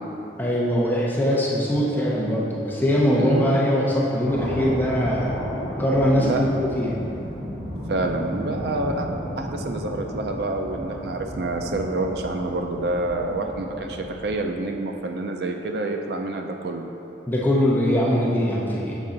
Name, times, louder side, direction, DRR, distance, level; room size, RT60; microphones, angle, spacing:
voice 1, 0.4-5.4 5.8-7.0 17.3-19.0, equal, 10° left, -6 dB, 0.7 m, -22 dB
voice 2, 3.2-3.5 6.1-6.4 7.9-9.1 9.4-16.9, right 2 dB, 60° right, 3 dB, 0.4 m, -27 dB
sound 1, 4.2-14.6, equal, 35° right, 1.6 m, -34 dB
7.2 x 5.3 x 3.8 m, 2.9 s
head